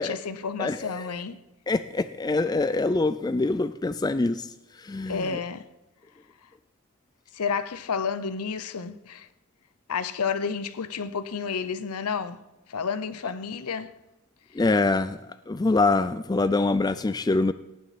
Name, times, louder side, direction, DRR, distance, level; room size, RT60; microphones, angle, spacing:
voice 1, 0.0-1.4 5.1-5.6 7.3-9.3 9.9-12.4 12.7-13.9, left 5 dB, 90° left, 0.7 m, -30 dB
voice 2, 0.6-1.2 1.7-4.5 4.8-5.3 14.5-15.2 15.5-17.5, left 3 dB, 20° left, 0.3 m, -24 dB
18.0 x 9.2 x 4.2 m
head